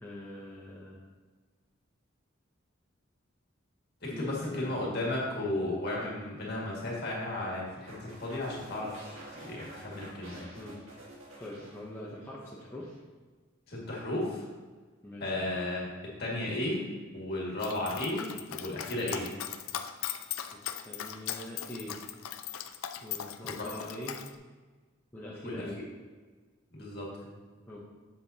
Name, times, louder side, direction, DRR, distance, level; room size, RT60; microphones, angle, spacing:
voice 1, 0.0-1.0 4.1-4.9 10.6-10.8 11.4-12.9 15.0-15.4 20.9-22.0 23.0-24.2 25.1-25.8 27.7-27.9, left 1 dB, 10° left, -6 dB, 0.8 m, -43 dB
voice 2, 4.0-9.0 9.3-10.5 13.7-14.5 15.2-15.9 16.2-16.8 17.1-19.3 23.4-23.7 25.4-25.7 26.7-27.3, left 1 dB, 50° left, -4 dB, 2.0 m, -34 dB
sound 1, 7.9-12.3 12.6-13.0, right 1 dB, 85° right, 1.7 m, -48 dB
Dog, 17.6-24.3, left 10 dB, 85° left, 0.4 m, -39 dB
7.7 x 7.3 x 2.8 m, 1.4 s
head